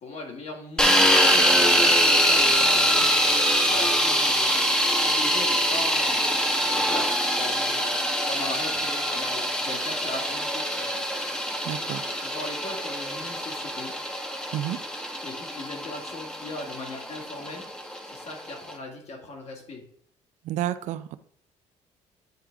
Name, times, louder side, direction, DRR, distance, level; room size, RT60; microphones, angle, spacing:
voice 1, 0.0-1.1 1.5-3.2 3.7-4.5 5.0-7.9 8.3-11.0 12.2-13.9 15.2-17.7 18.0-19.8, left 2 dB, 60° left, 1 dB, 1.9 m, -39 dB
sound 1, 0.8-18.7, equal, 5° left, 1.0 m, -24 dB
voice 2, 11.6-12.0 14.5-14.8 20.4-21.2, right 12 dB, 70° right, 13 dB, 0.5 m, -30 dB
8.9 x 3.5 x 3.4 m, 0.63 s
cardioid pair, 85°, 13 cm